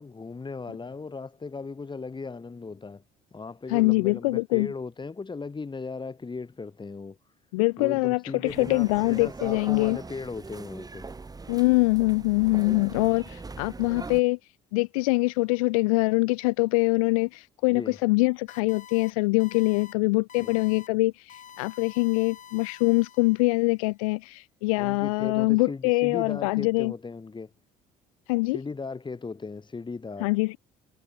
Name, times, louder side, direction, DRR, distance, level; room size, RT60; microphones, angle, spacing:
voice 1, 0.0-3.0 3.3-7.2 7.8-11.1 17.7-18.0 20.4-20.6 24.8-27.5 28.5-30.3, left 4 dB, 25° left, 5.3 m, -37 dB
voice 2, 3.7-4.7 7.5-10.0 11.5-14.4 14.7-26.9 28.3-28.6 30.2-30.6, left 25 dB, 85° left, 0.5 m, -24 dB
sound 1, 8.5-14.2, right 3 dB, 20° right, 2.1 m, -41 dB
sound 2, 18.5-19.1 19.4-19.9 20.3-20.9 21.3-23.6, left 8 dB, 45° left, 2.9 m, -48 dB
hypercardioid pair, 65°, 18 cm